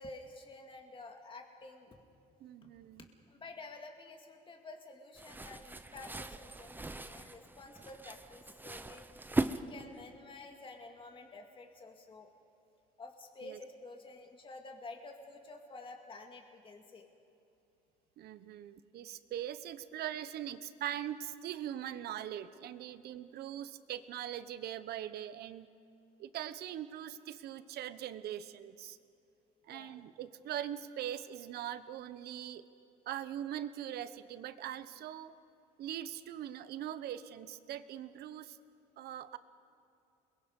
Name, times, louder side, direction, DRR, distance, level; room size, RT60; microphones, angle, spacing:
voice 1, 0.0-2.0 3.0-9.1 9.5-12.3 13.0-17.1 29.7-30.0, left 3 dB, 30° left, 3 dB, 2.2 m, -50 dB
voice 2, 2.4-3.1 13.4-13.6 18.2-25.7 26.2-29.0 29.6-32.6 33.1-35.3 35.8-38.6 39.0-39.4, right 11 dB, 70° right, 13 dB, 1.0 m, -41 dB
sound 1, 5.2-10.1, right 2 dB, 10° right, 0.8 m, -39 dB
28.5 x 22.0 x 5.4 m, 2.6 s
cardioid pair, 110°, 17 cm